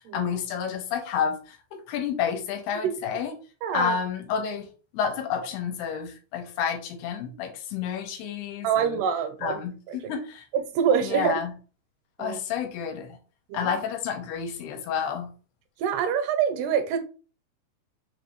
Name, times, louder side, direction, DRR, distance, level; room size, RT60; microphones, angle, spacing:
voice 1, 0.0-3.3 3.7-4.7 4.9-9.0 9.4-10.4 11.0-11.5 12.2-13.2 13.5-15.3, left 7 dB, 85° left, 2.7 m, -30 dB
voice 2, 3.6-4.0 8.6-9.6 9.9-10.0 10.5-11.4 12.2-12.4 13.5-13.7 15.8-17.0, right 8 dB, 85° right, 2.8 m, -25 dB
6.0 x 2.6 x 3.1 m
omnidirectional pair, 4.6 m